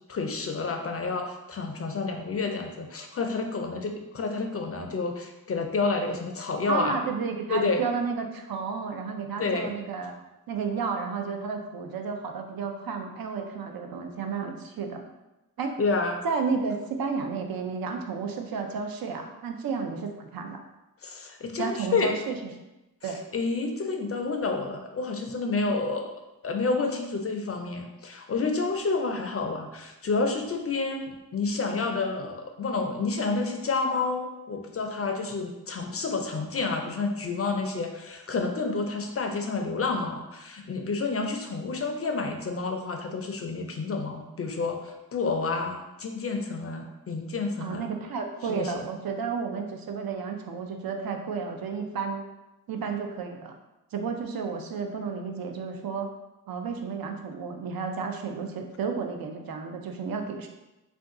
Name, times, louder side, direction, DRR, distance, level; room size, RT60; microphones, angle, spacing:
voice 1, 0.1-7.0 7.5-7.8 9.4-9.8 15.8-16.2 21.0-22.1 23.0-26.1 26.4-47.9 48.5-48.9, left 3 dB, 40° left, 4 dB, 0.4 m, -29 dB
voice 2, 6.7-10.1 10.5-15.0 15.6-15.8 16.2-20.6 21.6-22.4 23.0-23.2 47.6-52.3 52.7-53.5 53.9-56.1 56.5-60.5, right 5 dB, 70° right, 4 dB, 0.5 m, -32 dB
2.5 x 2.3 x 3.6 m, 0.99 s
cardioid pair, 65°, 38 cm